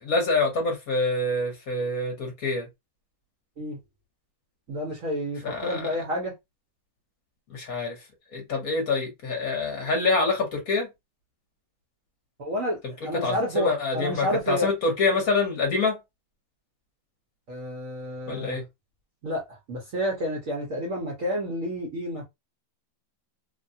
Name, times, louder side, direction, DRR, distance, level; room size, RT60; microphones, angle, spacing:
voice 1, 0.0-2.7 5.4-5.9 7.5-7.9 8.3-10.9 13.2-16.0 18.3-18.6, left 3 dB, 50° left, 1.2 m, -26 dB
voice 2, 4.7-6.3 12.4-14.7 17.5-18.6 19.2-22.2, equal, 55° right, 0.9 m, -30 dB
3.3 x 2.2 x 2.6 m
omnidirectional pair, 2.3 m